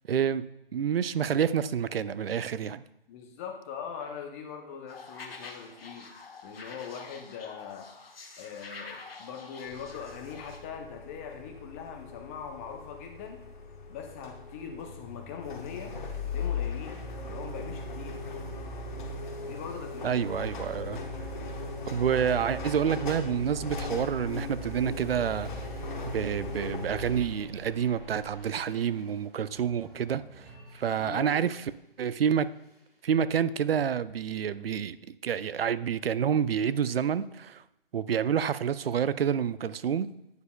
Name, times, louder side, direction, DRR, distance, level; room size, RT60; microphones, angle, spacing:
voice 1, 0.1-0.4 0.7-2.8 20.0-21.0 21.9-25.5 26.0-30.4 30.7-31.6 32.0-32.5 33.0-35.0 35.2-37.6 37.9-40.1, right 8 dB, 80° right, 0.5 m, -28 dB
voice 2, 3.1-6.1 6.4-7.9 8.4-13.4 13.9-16.0 16.2-17.0 17.3-18.2 19.4-20.3 31.0-31.5, left 7 dB, 15° left, 0.6 m, -41 dB
sound 1, 4.9-10.6, left 4 dB, 80° left, 1.2 m, -47 dB
sound 2, 9.7-27.2, left 3 dB, 55° left, 1.3 m, -38 dB
sound 3, 22.6-31.8 32.1-32.9, right 3 dB, 20° right, 2.2 m, -48 dB
9.5 x 6.6 x 2.2 m
figure-of-eight pair, 145°, 29 cm